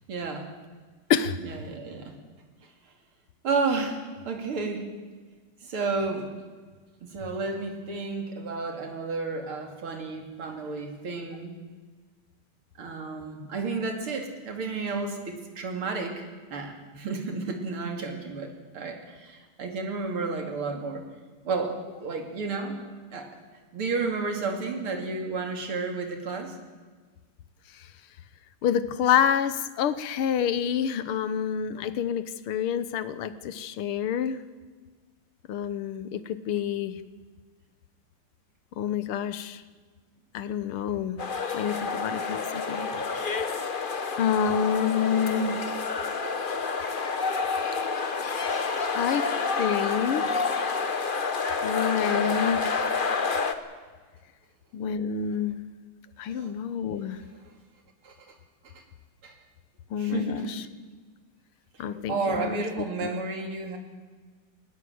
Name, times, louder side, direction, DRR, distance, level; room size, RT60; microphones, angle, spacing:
voice 1, 0.1-0.5 1.4-2.2 3.4-4.9 5.6-6.3 7.0-11.6 12.8-21.0 21.4-22.9 23.1-23.3 23.7-26.6 42.9-43.0 43.5-43.6 56.3-56.5 58.0-58.4 58.7-58.8 59.2-59.4 60.0-60.7 62.1-63.8, right 4 dB, 85° right, 4 dB, 3.5 m, -32 dB
voice 2, 28.6-34.4 35.5-37.0 38.8-39.6 40.3-41.2 41.5-42.9 44.2-45.6 48.9-49.3 49.6-50.6 51.6-52.7 54.7-55.6 56.2-57.2 59.9-60.6 61.8-62.6 63.0-63.1, left 8 dB, 85° left, 14 dB, 1.9 m, -28 dB
sound 1, 41.2-53.5, left 4 dB, 35° left, 0.9 m, -29 dB
19.5 x 19.0 x 7.9 m, 1.4 s
omnidirectional pair, 2.3 m